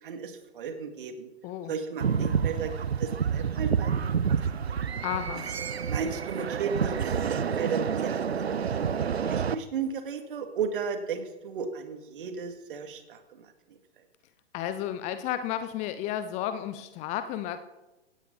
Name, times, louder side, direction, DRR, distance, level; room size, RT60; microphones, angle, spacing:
voice 1, 0.0-1.3 1.7-2.7 3.0-3.9 4.3-4.8 5.9-13.5, right 6 dB, 50° right, 6 dB, 2.6 m, -35 dB
sound 1, 2.0-9.5, right 7 dB, 70° right, 0.9 m, -28 dB
voice 2, 5.0-5.5 14.5-17.6, left 11 dB, 20° left, 11 dB, 0.7 m, -32 dB
17.5 x 16.0 x 4.2 m, 1.1 s
figure-of-eight pair, 115°, 33 cm